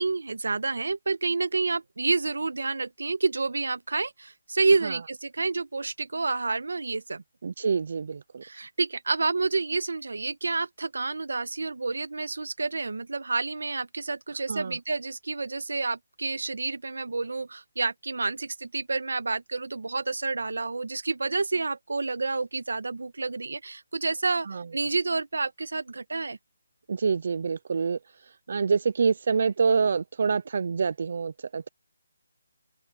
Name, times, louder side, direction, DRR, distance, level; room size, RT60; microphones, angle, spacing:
voice 1, 0.0-7.2 8.4-26.4, right 3 dB, 85° right, 1.3 m, -29 dB
voice 2, 7.4-8.4 14.5-14.8 24.5-24.6 26.9-28.0 28.5-31.7, right 5 dB, 45° right, 0.4 m, -26 dB
open air
hypercardioid pair, 170°, 0 cm